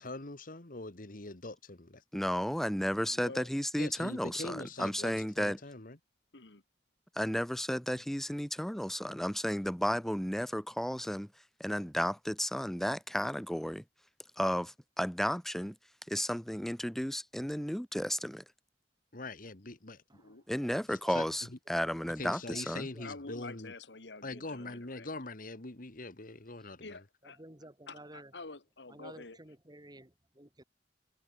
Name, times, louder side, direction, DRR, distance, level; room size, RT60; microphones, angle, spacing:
voice 1, 0.0-2.2 3.8-6.0 19.1-20.0 20.9-21.6 22.2-23.7 24.2-27.0, left 2 dB, 50° left, 1.9 m, -43 dB
voice 2, 2.1-5.6 7.2-11.3 11.6-13.8 14.4-15.8 16.1-18.4 20.5-22.9, equal, ahead, 0.7 m, -33 dB
voice 3, 3.1-3.5 6.3-6.6 20.2-20.4 23.0-25.1 26.8-27.4 27.9-29.4, left 3 dB, 85° left, 1.9 m, -48 dB
voice 4, 22.5-23.1 24.6-24.8 27.2-28.3 28.9-30.6, right 1 dB, 25° right, 5.7 m, -53 dB
head